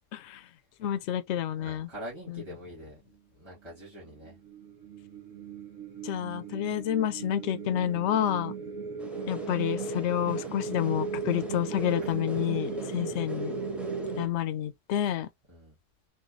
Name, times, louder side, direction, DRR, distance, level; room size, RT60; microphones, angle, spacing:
voice 1, 0.1-0.4 0.8-1.9 6.0-8.5 9.3-13.5 14.2-15.3, left 10 dB, 70° left, 0.8 m, -29 dB
voice 2, 1.6-3.0 3.3-4.4 12.0-12.2 15.5-15.8, equal, 25° right, 2.0 m, -44 dB
sound 1, 4.1-14.3, right 5 dB, 85° right, 1.3 m, -37 dB
sound 2, 9.0-14.2, left 1 dB, ahead, 0.8 m, -42 dB
4.4 x 2.6 x 2.5 m
omnidirectional pair, 1.3 m